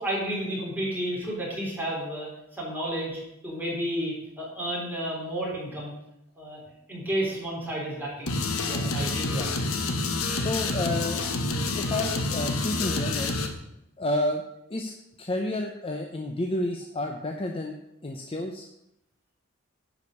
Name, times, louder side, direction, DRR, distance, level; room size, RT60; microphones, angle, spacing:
voice 1, 0.0-5.9 6.4-6.6 6.9-8.4 8.6-9.5, right 1 dB, 10° right, -5 dB, 3.6 m, -32 dB
sound 1, 8.3-13.5, left 3 dB, 70° left, 1.1 m, -28 dB
voice 2, 10.3-11.2 11.7-13.3 14.0-14.4 14.7-14.9 15.2-17.8 18.0-18.6, left 1 dB, 25° left, 2 dB, 0.7 m, -30 dB
10.5 x 5.1 x 6.6 m, 0.82 s
head